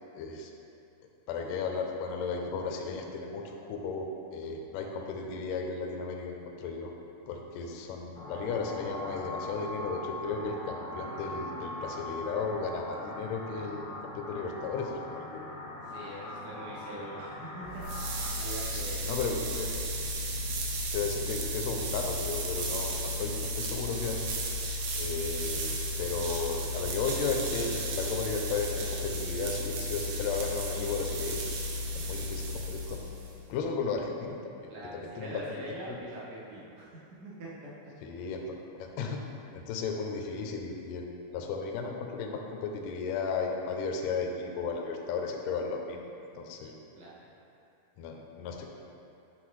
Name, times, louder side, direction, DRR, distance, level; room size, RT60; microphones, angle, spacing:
voice 1, 0.2-0.5 1.3-6.9 7.3-15.5 18.7-19.7 20.9-24.2 25.0-31.4 31.9-33.1 33.5-34.4 34.9-35.4 38.0-38.4 38.8-39.2 39.5-46.0 46.4-46.7 48.0-48.6, left 4 dB, 80° left, 2 dB, 1.6 m, -34 dB
sound 1, 8.2-18.3, left 1 dB, 45° left, 1.3 m, -41 dB
voice 2, 15.8-17.8 18.1-19.1 34.7-37.5 46.9-47.2, right 1 dB, 60° right, -7 dB, 1.0 m, -43 dB
sound 2, 17.6-33.4, equal, 85° right, 2.3 m, -34 dB
8.9 x 3.6 x 3.1 m, 2.7 s
omnidirectional pair, 3.7 m